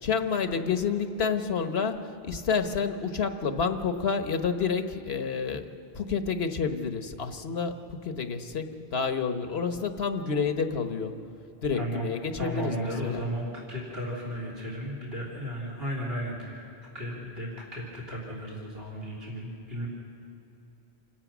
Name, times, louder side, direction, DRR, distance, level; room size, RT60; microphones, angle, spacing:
voice 1, 0.0-5.7 5.9-11.2 11.6-13.2, left 5 dB, 75° left, 8 dB, 1.3 m, -29 dB
voice 2, 11.7-12.1 12.4-16.7 16.9-19.9, equal, 70° right, -3 dB, 3.6 m, -34 dB
27.5 x 16.5 x 6.1 m, 2.9 s
omnidirectional pair, 1.0 m